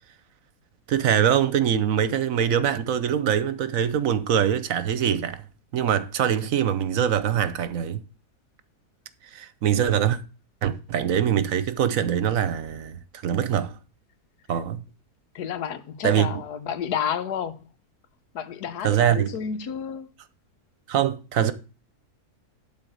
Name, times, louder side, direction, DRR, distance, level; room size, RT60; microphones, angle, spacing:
voice 1, 0.9-5.4 5.7-8.0 9.3-10.2 10.6-13.0 13.2-13.7 14.5-14.8 16.0-16.3 18.8-19.3 20.9-21.5, right 9 dB, 65° right, 1.1 m, -23 dB
voice 2, 15.3-17.6 18.3-20.1, left 8 dB, 85° left, 1.5 m, -31 dB
12.0 x 4.1 x 7.7 m
omnidirectional pair, 1.7 m